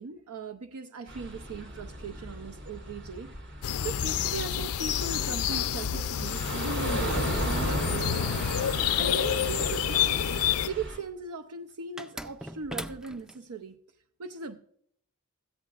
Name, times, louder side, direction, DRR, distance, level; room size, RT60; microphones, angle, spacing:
voice 1, 0.0-3.3 3.8-8.4 9.0-10.2 10.6-13.8 14.2-14.6, right 5 dB, 75° right, 0.6 m, -38 dB
sound 1, 1.1-11.0, right 1 dB, 55° right, 2.9 m, -36 dB
sound 2, 3.6-10.7, left 9 dB, 75° left, 0.4 m, -29 dB
sound 3, 9.0-10.4 12.0-13.4, equal, 5° right, 0.3 m, -41 dB
17.0 x 13.5 x 2.4 m
head